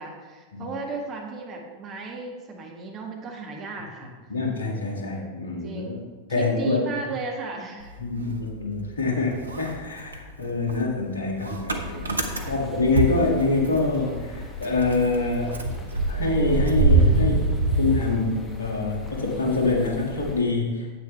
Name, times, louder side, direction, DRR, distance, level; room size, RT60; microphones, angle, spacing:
voice 1, 0.0-4.1 5.6-6.0 6.3-7.9 12.3-12.6, right 4 dB, 30° right, 1 dB, 1.6 m, -35 dB
voice 2, 4.3-6.0 6.3-6.8 8.0-12.1 12.4-15.8 16.1-17.5 17.8-20.9, left 3 dB, 70° left, 0 dB, 1.6 m, -25 dB
Motor vehicle (road) / Engine starting, 7.8-9.0 9.3-14.0 14.3-14.4 14.6-18.7, right 2 dB, 75° right, 0.8 m, -24 dB
sound 1, 11.7-20.4, left 3 dB, 15° left, 1.3 m, -37 dB
9.5 x 8.3 x 3.2 m, 1.4 s
figure-of-eight pair, 90°, 0 cm